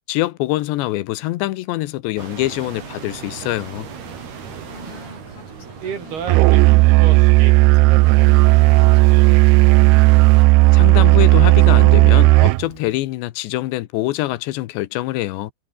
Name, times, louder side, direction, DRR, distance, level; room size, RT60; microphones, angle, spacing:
voice 1, 0.1-3.9 10.7-15.5, left 17 dB, 90° left, 3.3 m, -24 dB
sound 1, 2.2-10.5, right 7 dB, 65° right, 6.0 m, -35 dB
sound 2, 2.4-11.8, right 5 dB, 40° right, 5.1 m, -41 dB
voice 2, 4.7-10.1, left 4 dB, 55° left, 8.4 m, -45 dB
Musical instrument, 6.3-12.7, right 22 dB, 80° right, 2.5 m, -12 dB
omnidirectional pair, 4.9 m